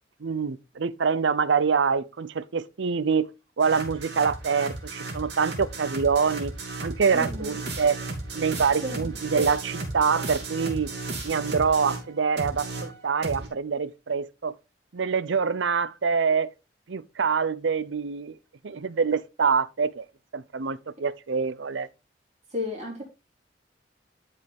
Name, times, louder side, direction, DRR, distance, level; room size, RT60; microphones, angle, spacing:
voice 1, 0.2-3.3 3.6-6.5 6.8-8.0 8.3-10.9 11.2-14.5 14.9-16.5 16.9-18.4 18.6-20.1 20.3-21.9, right 5 dB, 85° right, 0.6 m, -25 dB
sound 1, 3.6-12.1 12.4-13.5, right 3 dB, 65° right, 3.0 m, -35 dB
voice 2, 7.1-7.6 8.8-9.1 22.5-23.0, left 2 dB, 40° right, 3.3 m, -33 dB
11.5 x 5.5 x 3.5 m
head